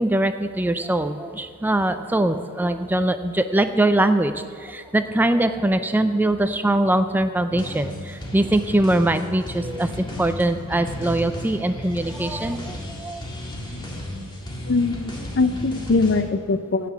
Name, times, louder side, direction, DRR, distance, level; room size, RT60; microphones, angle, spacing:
voice 1, 0.0-13.3, right 1 dB, 10° right, 9 dB, 0.3 m, -22 dB
sound 1, 7.5-16.2, left 1 dB, 20° left, 1.9 m, -34 dB
voice 2, 14.7-16.9, left 3 dB, 50° left, 12 dB, 0.5 m, -22 dB
16.0 x 5.9 x 7.0 m, 2.3 s
head